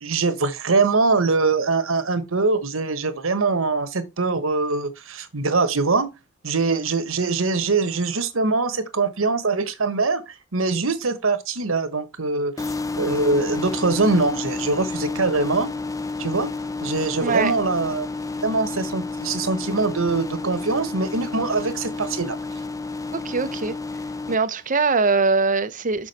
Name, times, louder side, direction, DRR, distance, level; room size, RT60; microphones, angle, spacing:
voice 1, 0.0-6.1 6.4-10.2 10.5-12.5 13.0-15.7 16.2-16.5 16.8-18.1 18.4-22.4, right 3 dB, 90° right, 1.2 m, -23 dB
sound 1, 12.6-24.4, left 3 dB, 15° left, 0.5 m, -30 dB
voice 2, 17.2-17.5 23.1-23.8 24.3-26.1, right 4 dB, 40° right, 0.8 m, -22 dB
6.2 x 6.1 x 4.1 m
head